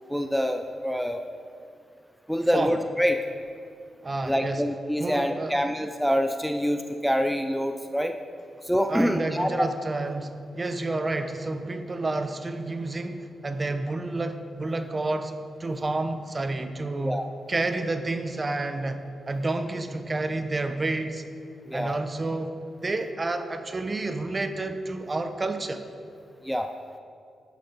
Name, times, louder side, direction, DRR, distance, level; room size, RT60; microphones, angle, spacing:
voice 1, 0.1-1.2 2.3-3.2 4.3-8.2 8.6-9.7 17.0-17.2 21.7-22.0 26.4-26.7, equal, ahead, 6 dB, 0.5 m, -26 dB
voice 2, 4.0-4.6 5.0-5.7 8.9-15.3 15.6-17.2 17.5-19.0 19.3-21.2 21.7-22.6 22.8-25.8, right 2 dB, 35° right, 9 dB, 0.9 m, -29 dB
10.5 x 9.3 x 4.2 m, 2.5 s
cardioid pair, 60°, 0 cm